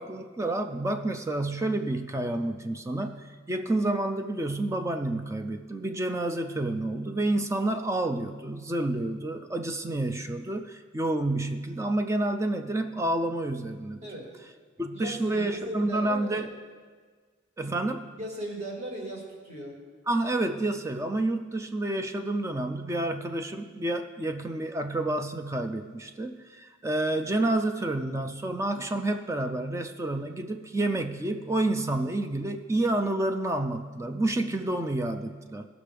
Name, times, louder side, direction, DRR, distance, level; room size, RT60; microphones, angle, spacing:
voice 1, 0.0-14.0 14.8-16.5 17.6-18.1 20.1-35.7, right 2 dB, 15° right, 6 dB, 0.3 m, -29 dB
voice 2, 14.9-16.5 18.2-19.8, right 1 dB, 30° right, -2 dB, 1.8 m, -37 dB
17.0 x 6.0 x 3.4 m, 1.5 s
head